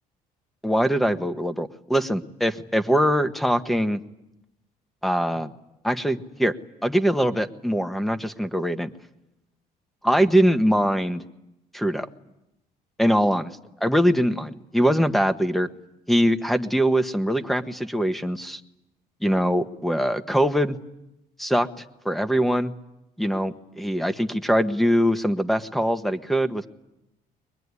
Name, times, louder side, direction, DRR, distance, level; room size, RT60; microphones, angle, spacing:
voice 1, 0.6-4.0 5.0-5.5 5.8-6.6 6.8-8.9 10.0-11.2 11.7-12.1 13.0-13.5 13.8-15.7 16.1-18.6 19.2-20.8 21.4-22.7 23.2-26.7, equal, ahead, 9 dB, 1.3 m, -22 dB
24.0 x 20.5 x 9.8 m, 0.91 s
cardioid pair, 110°, 17 cm